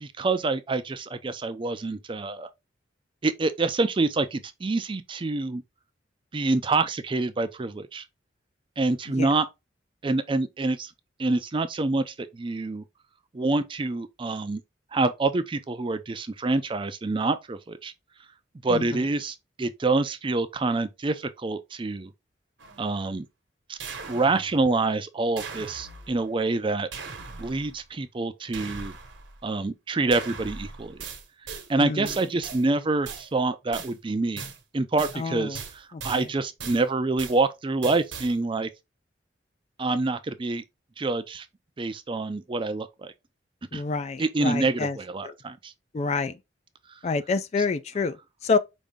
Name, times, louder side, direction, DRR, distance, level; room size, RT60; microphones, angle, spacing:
voice 1, 0.0-2.5 3.2-5.6 6.3-8.0 8.8-9.5 10.0-10.9 11.2-12.8 13.3-14.6 14.9-17.9 18.6-22.1 22.8-23.3 23.7-23.8 24.1-26.9 27.4-28.9 29.4-31.0 31.7-34.4 34.7-38.7 39.8-40.6 41.0-41.5 41.8-43.1 43.7-43.8 44.2-45.7, right 3 dB, 25° right, 0.4 m, -26 dB
voice 2, 18.7-19.0 31.8-32.1 35.1-35.6 35.9-36.3 43.7-45.0 45.2-45.3 45.9-46.4 47.0-48.6, left 4 dB, 35° left, 0.3 m, -28 dB
sound 1, 22.6-23.0 23.8-24.8 25.4-26.3 26.9-27.8 28.5-29.4 30.1-31.7 32.0-32.6 33.0-33.3 33.7-33.9 34.4-34.6 35.0-35.2 35.5-36.3 36.6-36.8 37.2-37.4 37.8-38.3, right 5 dB, 80° right, 1.1 m, -39 dB
5.1 x 2.7 x 3.4 m
head